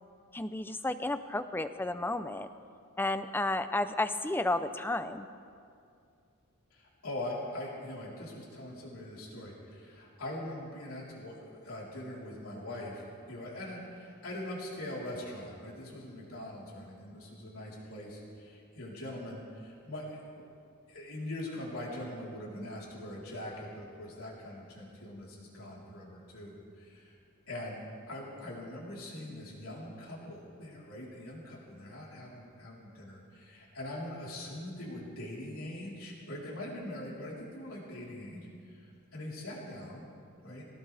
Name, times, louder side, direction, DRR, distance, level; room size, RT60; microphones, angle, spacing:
voice 1, 0.3-2.5 3.0-5.3, left 2 dB, 10° left, 10 dB, 0.5 m, -32 dB
voice 2, 6.7-20.2 20.9-27.2 27.5-40.1 40.4-40.6, left 1 dB, 75° left, -5 dB, 4.0 m, -42 dB
22.5 x 18.0 x 3.5 m, 2.4 s
head